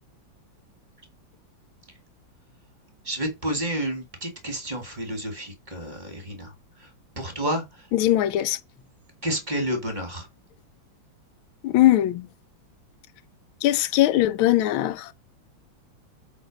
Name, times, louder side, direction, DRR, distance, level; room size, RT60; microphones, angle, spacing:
voice 1, 3.1-6.5 6.8-6.9 7.2-7.6 9.2-10.3, right 1 dB, 25° right, 1.9 m, -30 dB
voice 2, 7.9-8.6 11.6-12.3 13.6-15.1, left 14 dB, 85° left, 1.4 m, -20 dB
7.8 x 3.4 x 5.1 m
omnidirectional pair, 2.2 m